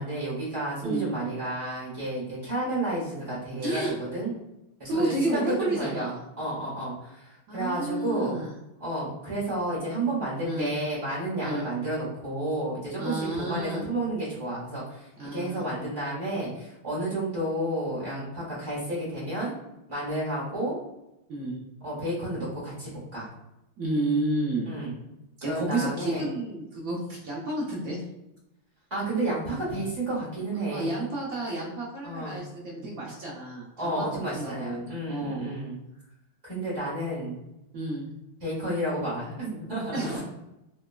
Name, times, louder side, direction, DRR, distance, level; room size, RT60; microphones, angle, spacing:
voice 1, 0.0-4.3 4.8-6.1 6.4-8.4 8.8-19.5 19.9-20.8 21.8-23.3 24.7-24.9 25.4-26.3 28.9-31.0 32.0-32.4 33.8-35.8 36.4-37.4 38.4-40.0, right 1 dB, 40° right, -7 dB, 1.5 m, -31 dB
voice 2, 0.8-1.1 3.6-3.9 4.8-6.2 7.5-8.6 10.4-10.7 11.4-11.7 13.0-13.9 15.2-15.6 21.3-21.6 23.8-24.7 25.4-28.0 30.7-35.5 37.7-38.1 39.9-40.2, right 2 dB, 85° right, -5 dB, 0.7 m, -31 dB
3.9 x 2.2 x 2.2 m, 0.90 s
omnidirectional pair, 2.4 m